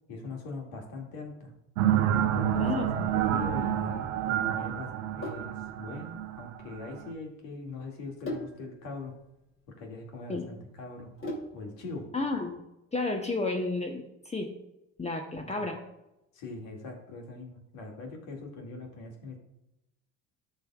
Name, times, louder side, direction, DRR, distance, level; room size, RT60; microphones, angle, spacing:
voice 1, 0.1-1.5 2.3-9.1 9.7-11.1 11.5-12.1 15.4-15.7 16.3-19.4, left 3 dB, 65° left, 1 dB, 2.4 m, -41 dB
sound 1, 1.8-7.1, right 10 dB, 80° right, 0.8 m, -28 dB
Sink (filling or washing), 2.4-11.8, left 1 dB, 35° left, 2.9 m, -43 dB
voice 2, 2.5-3.1 10.3-10.5 12.1-12.6 12.9-14.5 15.0-15.8, left 3 dB, 15° left, 3 dB, 1.0 m, -32 dB
13.5 x 5.4 x 2.4 m, 0.90 s
hypercardioid pair, 75°, 37 cm